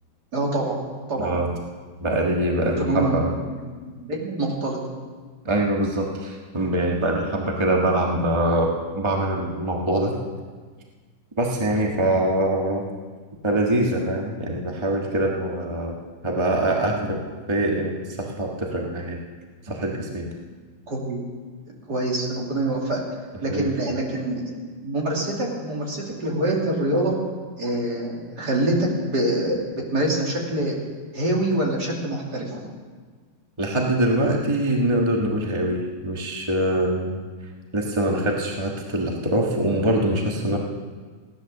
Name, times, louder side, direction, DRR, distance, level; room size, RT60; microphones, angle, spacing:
voice 1, 0.3-0.8 1.1-1.3 2.6-3.7 4.0-4.8 20.9-21.2 21.9-23.0 23.4-27.1 27.6-28.8 29.0-30.7 31.1-32.7, right 1 dB, 60° right, -2 dB, 3.2 m, -25 dB
voice 2, 1.2-1.5 2.0-3.3 5.4-10.1 11.4-12.8 13.4-16.0 16.2-19.2 19.6-20.3 23.5-23.7 33.6-37.2 37.7-40.6, right 1 dB, 15° right, 0 dB, 1.5 m, -23 dB
16.0 x 11.0 x 6.7 m, 1.5 s
omnidirectional pair, 2.0 m